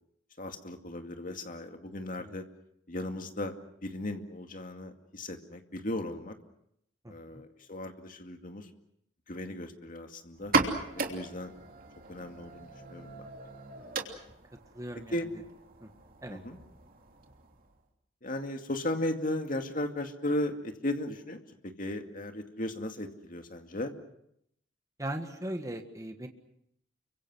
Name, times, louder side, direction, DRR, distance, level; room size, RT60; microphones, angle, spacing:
voice 1, 0.4-2.5 2.9-3.5 3.8-6.4 7.1-8.7 9.3-10.5 11.0-11.5 12.1-13.3 15.1-15.3 16.3-16.6 18.2-23.9, left 1 dB, 45° left, 5 dB, 2.3 m, -36 dB
voice 2, 7.0-7.4 14.7-15.1 15.8-15.9 16.2-16.4 25.0-26.3, right 1 dB, 15° right, 5 dB, 1.7 m, -38 dB
sound 1, 10.4-17.8, right 3 dB, 50° right, 3.1 m, -36 dB
30.0 x 24.5 x 6.2 m, 0.75 s
head